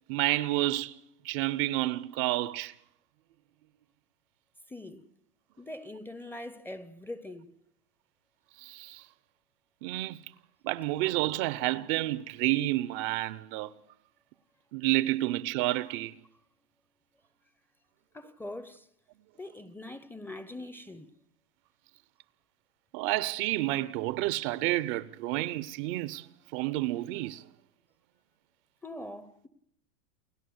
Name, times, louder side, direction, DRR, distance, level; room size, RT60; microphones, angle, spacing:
voice 1, 0.1-1.0 1.2-2.7 8.6-9.0 9.8-10.2 10.6-13.7 14.7-16.1 22.9-26.3 26.5-27.4, right 17 dB, 40° right, 0.7 m, -30 dB
voice 2, 4.7-5.0 5.6-7.5 18.1-18.9 19.4-21.1 28.8-29.5, left 1 dB, 5° left, 0.7 m, -42 dB
29.5 x 11.0 x 7.8 m
hypercardioid pair, 125°, 46 cm